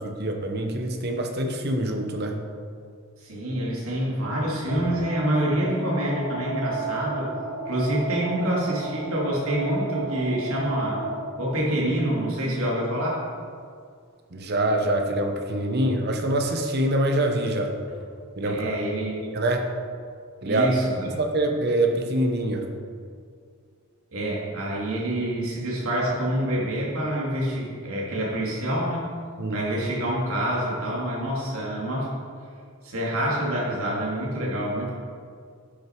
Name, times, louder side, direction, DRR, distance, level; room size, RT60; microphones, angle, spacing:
voice 1, 0.0-2.4 14.3-17.7 18.4-18.8 19.3-19.6 20.4-20.7 21.0-22.7 29.4-29.6, right 1 dB, 45° right, 3 dB, 1.0 m, -25 dB
voice 2, 3.2-7.3 7.6-11.0 11.4-13.2 18.4-19.2 20.5-21.0 24.1-29.0 29.5-32.1 32.8-34.9, right 1 dB, 70° right, -4 dB, 2.7 m, -26 dB
sound 1, 4.7-11.2, right 3 dB, 75° left, 1.4 m, -33 dB
11.5 x 6.6 x 4.6 m, 2.2 s
head